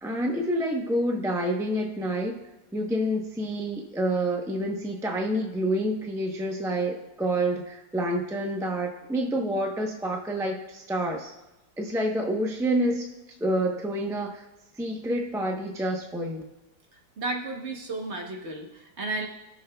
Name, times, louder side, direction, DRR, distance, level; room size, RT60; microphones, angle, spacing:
voice 1, 0.0-2.3 2.7-11.3 11.8-13.1 13.4-14.5 14.8-16.4, right 1 dB, 5° right, 1 dB, 0.4 m, -28 dB
voice 2, 17.2-19.3, right 2 dB, 45° right, 1 dB, 1.2 m, -33 dB
19.5 x 6.5 x 2.3 m, 0.99 s
omnidirectional pair, 1.9 m